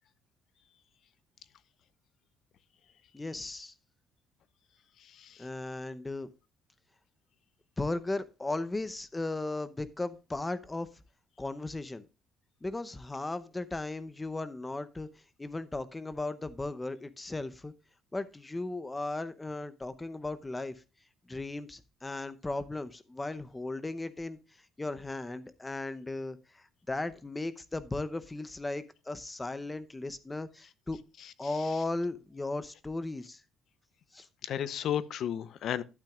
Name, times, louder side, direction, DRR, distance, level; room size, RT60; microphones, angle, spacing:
voice 1, 3.1-3.7 5.4-6.3 7.8-10.9 11.4-12.0 12.6-15.1 15.4-17.7 18.1-20.8 21.3-24.4 24.8-31.0 31.4-33.4 34.1-34.3, left 2 dB, 10° left, 0.7 m, -36 dB
voice 2, 5.0-5.4 34.4-35.8, left 10 dB, 55° left, 0.7 m, -33 dB
12.0 x 8.9 x 2.4 m
cardioid pair, 155°, 0 cm